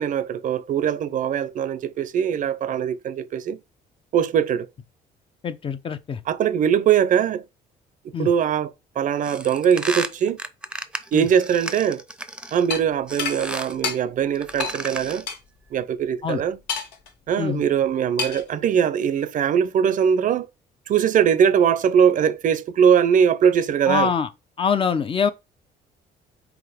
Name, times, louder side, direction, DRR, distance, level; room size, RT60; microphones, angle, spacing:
voice 1, 0.0-3.6 4.1-4.7 6.3-7.4 8.2-8.7 9.0-10.4 11.1-12.0 12.5-15.2 15.7-16.6 17.3-20.5 20.9-24.1, right 8 dB, 50° right, 0.6 m, -21 dB
voice 2, 5.4-6.2 8.1-8.3 11.1-11.3 16.2-16.4 17.4-17.6 23.9-24.3 24.6-25.3, left 6 dB, 30° left, 0.7 m, -24 dB
sound 1, 9.2-12.7 13.1-13.8 14.3-15.3, right 1 dB, 5° right, 0.7 m, -33 dB
sound 2, 12.7-12.8 13.2-13.4 13.8-14.0 14.6-14.8 15.3-15.4 16.7-17.1 18.2-18.5, left 5 dB, 85° left, 1.4 m, -27 dB
4.8 x 3.9 x 5.0 m
cardioid pair, 110°, 17 cm